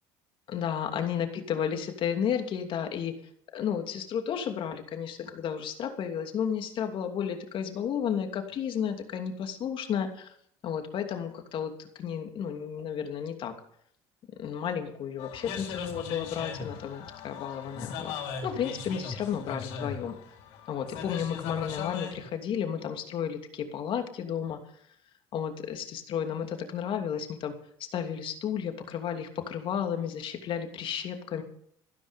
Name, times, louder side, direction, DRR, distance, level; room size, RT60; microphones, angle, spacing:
voice 1, 0.5-3.1 3.5-10.3 10.6-11.7 12.0-13.5 14.4-18.2 18.4-20.1 20.7-24.6 25.3-27.5 27.9-31.4, left 8 dB, 55° left, 5 dB, 2.9 m, -32 dB
sound 1, 15.2-22.3, left 6 dB, 75° left, 4.2 m, -39 dB
14.5 x 13.0 x 5.4 m, 0.64 s
supercardioid pair, 90°, 11 cm